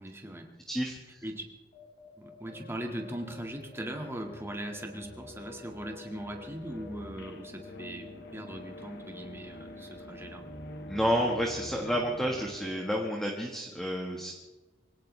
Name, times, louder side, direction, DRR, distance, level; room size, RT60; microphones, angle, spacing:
voice 1, 0.0-0.5 1.2-1.5 2.2-10.5, right 1 dB, 15° right, 2 dB, 1.8 m, -40 dB
voice 2, 0.7-1.2 10.9-14.3, equal, ahead, 0 dB, 1.5 m, -30 dB
sound 1, 1.7-13.4, left 2 dB, 40° left, 5.7 m, -51 dB
sound 2, 2.4-12.6, left 2 dB, 60° left, 1.6 m, -47 dB
24.5 x 17.5 x 3.3 m, 1.2 s
head